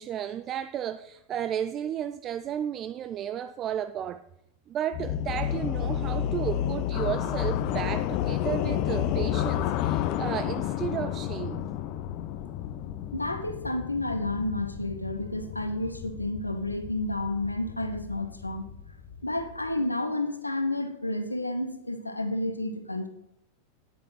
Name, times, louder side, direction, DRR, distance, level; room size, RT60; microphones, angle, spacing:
voice 1, 0.0-4.2 4.7-11.6, right 10 dB, 30° right, 0.3 m, -33 dB
sound 1, 4.9-19.8, left 11 dB, 40° left, 0.6 m, -31 dB
voice 2, 13.1-18.7 19.2-23.1, left 1 dB, 85° left, 0.9 m, -31 dB
9.5 x 9.1 x 4.1 m
figure-of-eight pair, 90°, 0 cm